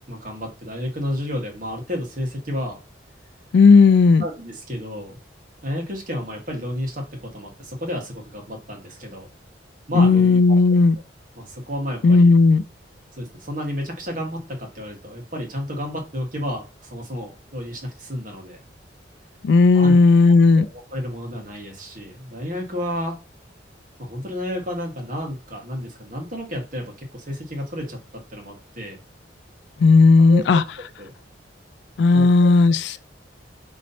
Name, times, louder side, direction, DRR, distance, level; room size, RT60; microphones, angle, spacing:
voice 1, 0.1-2.8 4.2-5.2 5.6-9.3 9.9-10.4 11.3-12.3 13.2-18.6 19.7-19.9 20.5-23.2 24.0-28.0 28.3-29.0 30.3-31.1 32.1-32.5, equal, 45° right, 1.4 m, -31 dB
voice 2, 3.5-4.2 10.0-10.9 12.0-12.6 19.4-20.7 29.8-30.6 32.0-32.9, left 4 dB, 65° left, 0.3 m, -14 dB
5.2 x 3.1 x 2.8 m
head